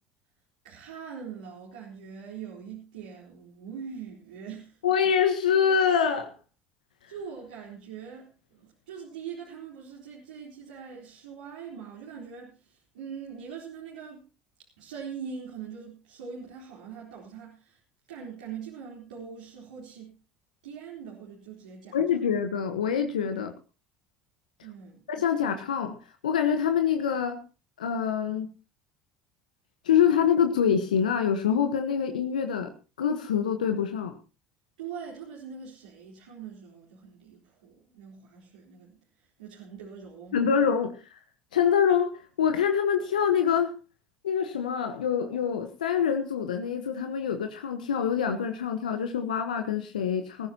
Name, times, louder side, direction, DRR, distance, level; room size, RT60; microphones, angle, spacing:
voice 1, 0.6-4.8 7.1-14.3 14.6-17.8 18.1-20.1 20.6-22.0 24.6-25.1 34.8-40.4, right 6 dB, 80° right, -4 dB, 3.9 m, -42 dB
voice 2, 4.8-6.3 21.9-23.5 25.1-26.0 26.2-27.4 27.8-28.5 29.8-32.7 33.0-34.2 40.3-41.0 41.5-43.7 44.2-50.5, left 7 dB, 85° left, 6 dB, 1.3 m, -25 dB
22.0 x 14.0 x 2.9 m, 0.32 s
hypercardioid pair, 70°, 4 cm